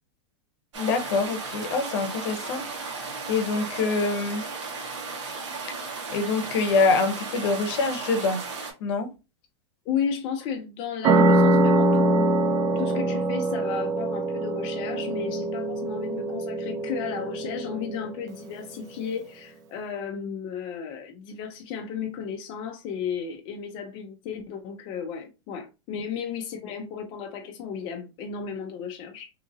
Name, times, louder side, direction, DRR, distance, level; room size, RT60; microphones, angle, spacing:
sound 1, 0.7-8.7, right 4 dB, 80° right, 1.2 m, -35 dB
voice 1, 0.8-4.4 6.1-8.4 8.8-9.1, left 4 dB, 60° left, 0.8 m, -25 dB
voice 2, 9.9-12.4 12.8-29.3, left 7 dB, 35° left, 0.5 m, -34 dB
sound 2, 11.0-18.2, right 2 dB, 25° right, 0.3 m, -23 dB
2.8 x 2.5 x 2.6 m
supercardioid pair, 150°, 15 cm